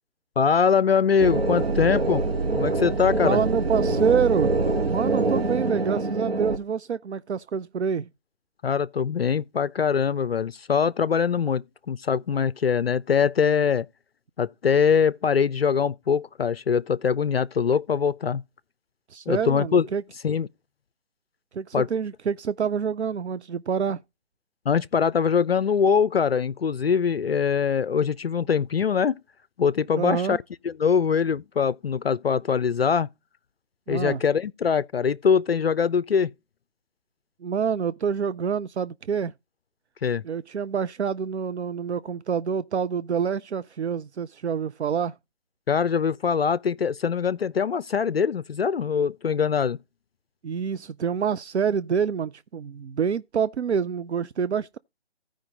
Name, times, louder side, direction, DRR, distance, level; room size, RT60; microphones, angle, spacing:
voice 1, 0.4-2.2 2.6-3.4 8.6-13.9 14.4-18.4 19.3-19.9 20.2-20.5 21.7-21.9 24.7-29.2 29.6-30.4 30.6-33.1 33.9-36.3 40.0-40.2 45.7-49.8, left 6 dB, 60° left, 0.4 m, -23 dB
sound 1, 1.2-6.6, right 3 dB, 60° right, 1.2 m, -25 dB
voice 2, 3.2-4.5 4.8-8.1 19.1-20.0 21.5-24.0 30.0-30.4 33.9-34.2 37.4-39.3 40.2-45.2 50.4-54.8, right 7 dB, 75° right, 0.5 m, -27 dB
15.0 x 5.1 x 3.8 m
figure-of-eight pair, 155°, 34 cm